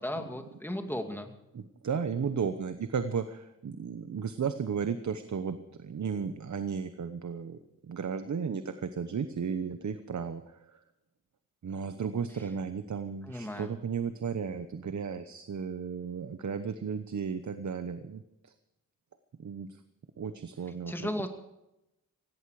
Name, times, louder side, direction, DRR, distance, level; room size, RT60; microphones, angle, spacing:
voice 1, 0.0-1.3 13.2-13.7 20.9-21.3, left 1 dB, 5° left, 5 dB, 2.4 m, -35 dB
voice 2, 1.5-7.6 7.8-10.8 11.6-18.5 19.4-19.7 20.2-21.3, right 6 dB, 60° right, 10 dB, 1.0 m, -34 dB
17.5 x 17.0 x 4.9 m, 0.88 s
wide cardioid pair, 105°, 32 cm